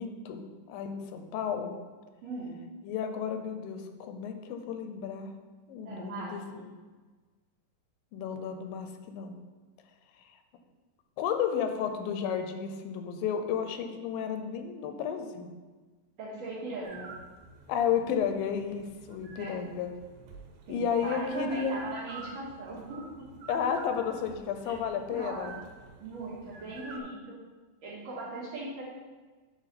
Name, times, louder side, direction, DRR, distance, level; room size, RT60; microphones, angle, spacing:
voice 1, 0.0-1.7 2.8-5.3 5.7-6.7 8.1-9.4 10.3-10.4 11.2-15.5 17.7-19.9 20.7-21.8 23.5-25.6, left 7 dB, 85° left, 6 dB, 2.3 m, -32 dB
voice 2, 2.2-2.5 5.8-6.6 16.2-17.1 19.4-19.5 20.7-23.2 25.1-25.6 26.0-27.4 27.8-28.8, right 2 dB, 55° right, -7 dB, 2.6 m, -39 dB
sound 1, 16.8-27.0, right 3 dB, 85° right, 2.5 m, -49 dB
9.1 x 4.1 x 4.1 m, 1.3 s
omnidirectional pair, 4.1 m